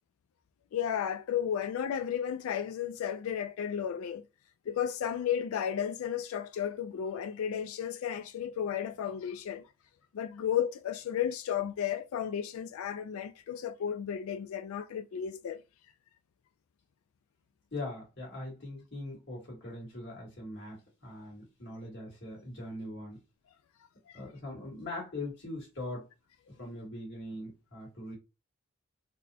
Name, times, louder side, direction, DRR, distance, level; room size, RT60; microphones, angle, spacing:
voice 1, 0.7-4.2 4.7-9.7 10.1-15.6 24.1-24.2, left 9 dB, 80° left, 0.3 m, -33 dB
voice 2, 17.7-23.2 24.1-26.1 26.6-28.1, left 2 dB, 55° left, 2.0 m, -41 dB
4.1 x 2.2 x 2.7 m
head